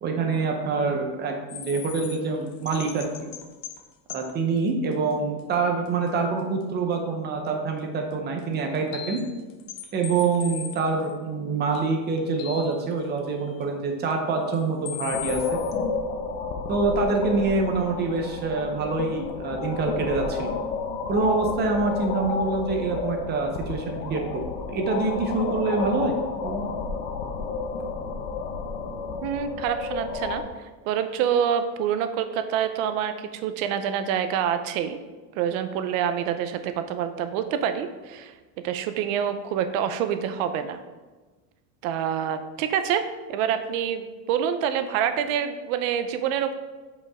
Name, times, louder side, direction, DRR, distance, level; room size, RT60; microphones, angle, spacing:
voice 1, 0.0-3.3 4.1-9.2 9.9-15.6 16.7-20.5 21.1-24.2 24.7-26.1 26.4-26.6, right 4 dB, 20° right, 3 dB, 0.8 m, -26 dB
sound 1, 1.5-3.8 4.1-4.3 4.9-5.0 5.4-5.5 5.9-6.0 8.4-8.5 8.7-11.1 11.7-12.9 13.2-13.3 14.1-14.2 14.5-14.6 14.9-15.7, left 9 dB, 45° left, 0.7 m, -38 dB
sound 2, 15.1-30.4, left 4 dB, 75° left, 1.1 m, -31 dB
voice 2, 29.2-30.4 30.8-35.0 35.4-38.3 38.6-40.8 41.8-46.5, right 8 dB, 55° right, 9 dB, 0.7 m, -26 dB
8.4 x 5.3 x 3.6 m, 1.3 s
cardioid pair, 175°, 47 cm